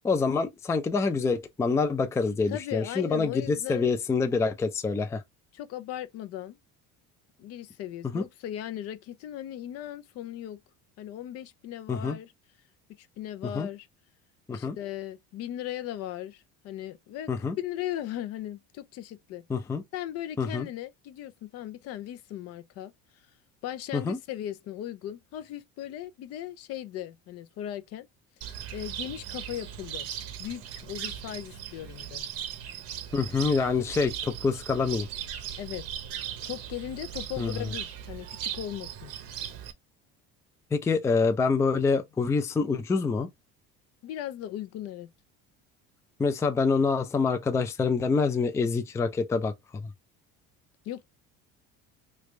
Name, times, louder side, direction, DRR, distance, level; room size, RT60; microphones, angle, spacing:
voice 1, 0.0-5.2 8.1-8.3 11.9-12.2 13.5-13.7 14.5-14.8 17.3-17.6 19.5-19.8 20.4-20.7 23.9-24.2 33.1-35.1 37.4-37.7 40.7-43.3 46.2-49.5, left 4 dB, 10° left, 0.4 m, -26 dB
voice 2, 2.5-3.9 5.5-6.6 7.4-10.6 11.0-12.3 13.0-13.9 14.5-17.3 17.6-19.4 19.9-22.9 23.6-28.1 28.4-30.1 30.4-32.2 35.6-35.9 36.4-39.1 44.0-45.1 50.8-51.0, left 12 dB, 55° left, 0.6 m, -38 dB
Cricket, 28.4-39.7, right 9 dB, 55° right, 0.8 m, -38 dB
3.2 x 2.5 x 3.1 m
cardioid pair, 130°, 29 cm